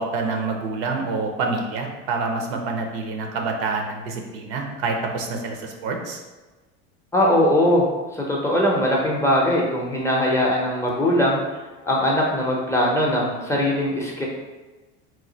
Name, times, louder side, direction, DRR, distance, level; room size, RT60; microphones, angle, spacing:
voice 1, 0.0-6.2, right 3 dB, 70° right, 2 dB, 0.7 m, -27 dB
voice 2, 7.1-7.9 8.1-11.4 11.8-14.3, left 1 dB, 10° left, -3 dB, 0.5 m, -20 dB
3.1 x 2.3 x 3.9 m, 1.2 s
supercardioid pair, 130°, 31 cm